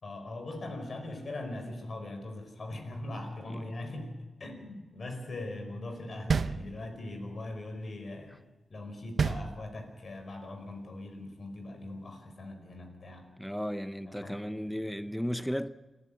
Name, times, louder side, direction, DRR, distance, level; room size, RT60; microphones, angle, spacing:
voice 1, 0.0-4.1 4.4-8.4 8.7-13.2 14.1-14.9, left 2 dB, 50° left, 5.1 m, -41 dB
sound 1, 6.3-7.2 9.2-10.1, right 5 dB, 60° right, 0.7 m, -30 dB
voice 2, 13.4-15.7, equal, ahead, 0.6 m, -35 dB
28.5 x 11.5 x 8.7 m
wide cardioid pair, 110°, 0 cm